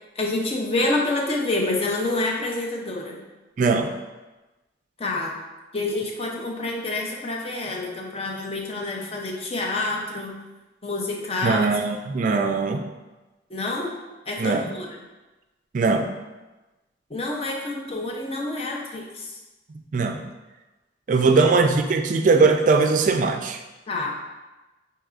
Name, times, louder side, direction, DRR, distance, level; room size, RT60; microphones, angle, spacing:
voice 1, 0.2-3.2 5.0-5.3 5.7-10.3 10.8-11.7 12.3-12.4 13.5-13.9 14.3-14.9 17.1-19.4 21.3-21.5 23.9-24.1, left 2 dB, 35° left, 0 dB, 0.6 m, -27 dB
voice 2, 3.6-3.9 11.4-12.8 14.4-14.7 15.7-16.1 19.9-20.2 21.1-23.6, right 4 dB, 45° right, 6 dB, 0.3 m, -20 dB
6.0 x 2.8 x 2.4 m, 1.1 s
head